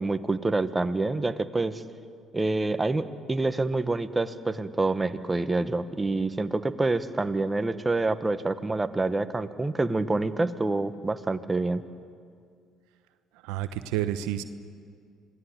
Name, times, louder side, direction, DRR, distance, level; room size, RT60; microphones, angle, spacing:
voice 1, 0.0-1.8 2.3-11.8, right 2 dB, 20° right, 10 dB, 1.4 m, -27 dB
voice 2, 13.4-14.4, right 12 dB, 75° right, 11 dB, 1.0 m, -29 dB
27.0 x 18.5 x 8.3 m, 2.2 s
hypercardioid pair, 60°, 0 cm